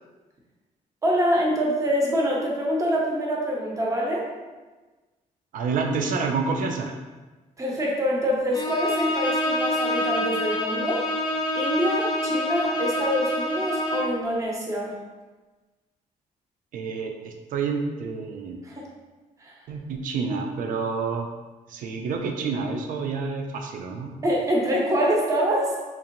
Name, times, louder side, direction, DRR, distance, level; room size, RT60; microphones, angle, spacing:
voice 1, 1.0-4.3 7.6-11.1 11.5-15.0 18.6-18.8 19.4-19.5 24.2-25.8, equal, 20° right, -2 dB, 0.6 m, -25 dB
voice 2, 5.5-7.0 16.7-18.6 19.7-21.3 21.7-24.1, right 4 dB, 70° right, 3 dB, 0.5 m, -28 dB
Bowed string instrument, 8.5-14.2, left 1 dB, 30° left, 0.4 m, -26 dB
3.6 x 2.9 x 2.9 m, 1.2 s
cardioid pair, 170°, 14 cm